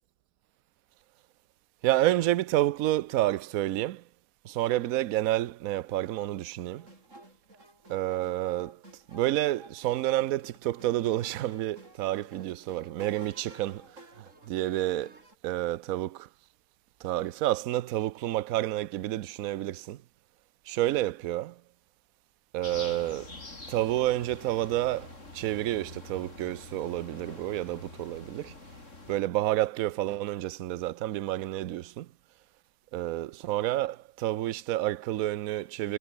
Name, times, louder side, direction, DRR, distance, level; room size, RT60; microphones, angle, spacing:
voice 1, 1.8-4.0 4.5-6.8 7.9-8.8 9.1-13.8 14.5-15.1 15.4-16.2 17.0-20.0 20.7-21.5 22.5-23.3 23.7-25.1 25.3-28.5 29.1-32.1 32.9-36.0, right 15 dB, 65° right, 1.0 m, -29 dB
sound 1, 6.8-15.3, right 1 dB, 45° right, 7.8 m, -53 dB
sound 2, 22.6-29.2, left 2 dB, 45° left, 4.9 m, -46 dB
omnidirectional pair, 1.8 m